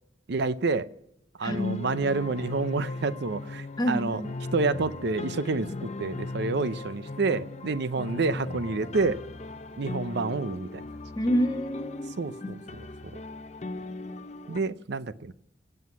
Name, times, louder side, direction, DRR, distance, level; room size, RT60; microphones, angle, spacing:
voice 1, 0.3-0.9 1.4-4.2 4.5-9.2 9.8-10.8 12.2-12.6 14.5-15.3, right 3 dB, 60° right, 0.6 m, -28 dB
voice 2, 1.4-1.8 3.8-4.2 8.0-8.1 11.1-12.5, equal, 20° left, 1.4 m, -28 dB
sound 1, 1.5-14.6, left 2 dB, 35° left, 0.7 m, -38 dB
17.0 x 8.0 x 9.5 m
head